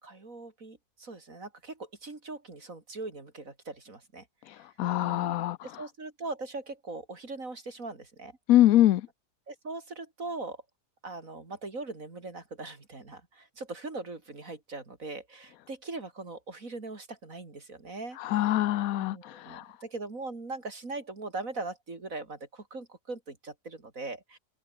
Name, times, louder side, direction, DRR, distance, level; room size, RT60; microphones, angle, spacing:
voice 1, 0.0-4.3 4.5-4.7 5.0-8.4 9.5-10.6 11.0-18.6 19.0-24.4, right 3 dB, 55° right, 3.8 m, -40 dB
voice 2, 4.5-5.6 8.5-9.0 18.2-19.7, left 13 dB, 70° left, 1.0 m, -24 dB
open air
omnidirectional pair, 1.7 m